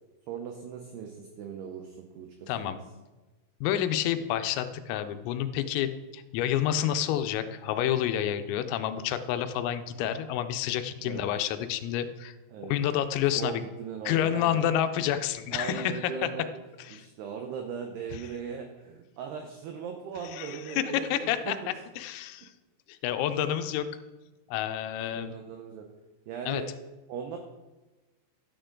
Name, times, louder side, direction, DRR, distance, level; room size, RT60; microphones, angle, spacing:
voice 1, 0.3-2.8 11.0-11.3 12.5-12.8 13.4-14.6 15.5-16.6 16.9-21.7 25.1-25.9 26.3-26.7 27.1-27.4, right 7 dB, 90° right, 4 dB, 2.3 m, -39 dB
voice 2, 2.5-2.8 3.6-12.3 12.6-13.6 14.1-16.3 16.8-17.0 18.1-18.2 20.3-21.6 22.0-22.5 22.9-23.9 24.5-25.3 26.5-26.6, left 11 dB, 90° left, 9 dB, 3.4 m, -29 dB
12.5 x 9.0 x 3.8 m, 1.2 s
omnidirectional pair, 5.9 m